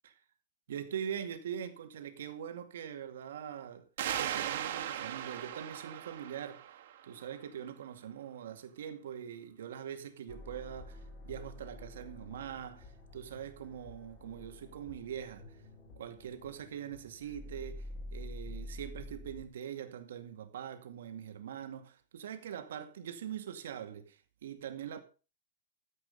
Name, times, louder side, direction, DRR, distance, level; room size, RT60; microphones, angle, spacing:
voice 1, 0.7-3.8 4.2-6.7 7.0-15.6 16.0-25.0, right 9 dB, 90° right, 2.2 m, -43 dB
sound 1, 4.0-7.3, right 10 dB, 65° right, 2.2 m, -38 dB
sound 2, 10.3-19.4, left 1 dB, 25° left, 4.7 m, -48 dB
13.5 x 8.0 x 5.4 m
supercardioid pair, 165°, 0 cm